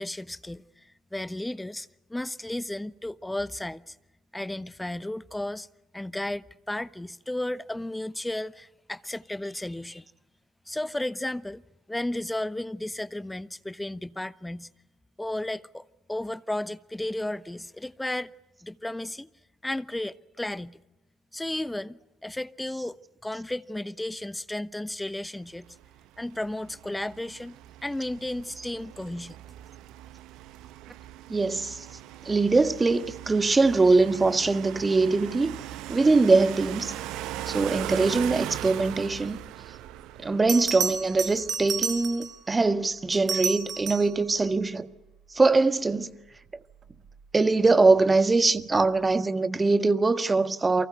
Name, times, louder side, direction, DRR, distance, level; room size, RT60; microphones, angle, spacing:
voice 1, 0.0-4.0 4.3-5.7 5.9-10.1 10.7-11.6 11.9-14.7 15.2-18.3 18.6-19.3 19.6-20.8 21.3-25.7 26.2-27.6 27.8-29.4, left 1 dB, 10° left, 0.9 m, -34 dB
sound 1, 25.6-41.8, right 13 dB, 60° right, 0.9 m, -39 dB
voice 2, 31.3-31.9 32.2-35.6 35.9-36.9 37.5-39.4 40.2-44.9 45.3-46.1 47.3-50.9, right 3 dB, 20° right, 1.5 m, -22 dB
Bell, 39.9-40.0 40.5-42.4 43.1-44.2 46.9-47.1, right 6 dB, 40° right, 1.9 m, -31 dB
29.5 x 24.0 x 6.7 m
figure-of-eight pair, 50°, 0 cm